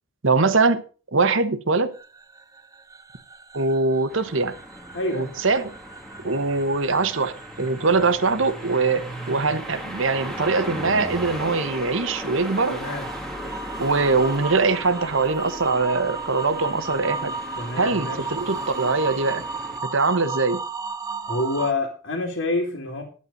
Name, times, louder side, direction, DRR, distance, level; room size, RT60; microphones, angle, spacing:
voice 1, 0.2-0.8 1.1-1.9 3.5-4.5 5.1-5.7 6.2-12.8 13.8-17.3 17.8-19.4 19.9-20.6, right 3 dB, 65° right, 1.1 m, -22 dB
sound 1, 1.9-10.6 10.8-21.7, right 4 dB, 15° right, 0.5 m, -36 dB
sound 2, 4.1-19.8, right 1 dB, ahead, 1.7 m, -37 dB
voice 2, 4.9-5.3 12.7-13.1 17.6-18.2 21.2-23.0, left 2 dB, 60° left, 2.2 m, -27 dB
11.0 x 8.5 x 5.3 m
head